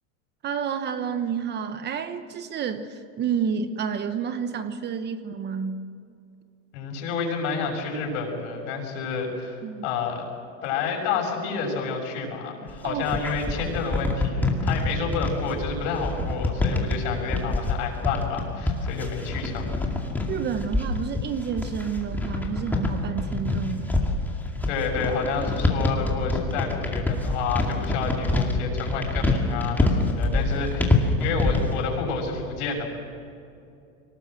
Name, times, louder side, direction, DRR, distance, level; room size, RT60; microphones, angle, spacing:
voice 1, 0.4-5.8 9.6-9.9 12.8-13.1 20.3-24.0, right 7 dB, 30° right, 10 dB, 1.0 m, -30 dB
voice 2, 6.7-10.3 10.6-19.8 24.7-32.9, left 5 dB, 70° left, 1 dB, 6.4 m, -29 dB
sound 1, 12.7-31.8, left 2 dB, 5° left, 2.3 m, -26 dB
24.0 x 19.0 x 7.7 m, 2.5 s
supercardioid pair, 150°, 36 cm